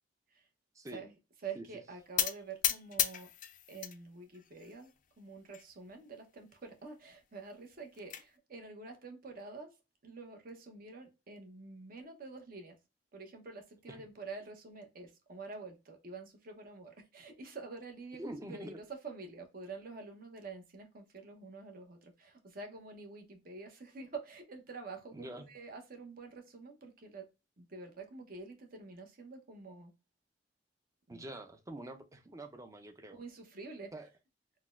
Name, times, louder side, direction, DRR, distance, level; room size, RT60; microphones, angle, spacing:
voice 1, 1.4-3.3 3.7-4.9 5.2-9.7 10.0-12.8 13.1-27.3 27.6-29.9 31.1-31.2 33.1-33.9, right 4 dB, 55° right, 0.9 m, -47 dB
sound 1, 2.2-4.0 4.3-5.0 5.5-5.6 5.9-6.0 6.4-6.5 7.6-8.2, left 11 dB, 45° left, 0.4 m, -34 dB
voice 2, 18.2-18.8 25.1-25.5 31.1-33.2 33.9-34.1, right 1 dB, 20° right, 0.5 m, -45 dB
4.1 x 2.2 x 2.4 m
head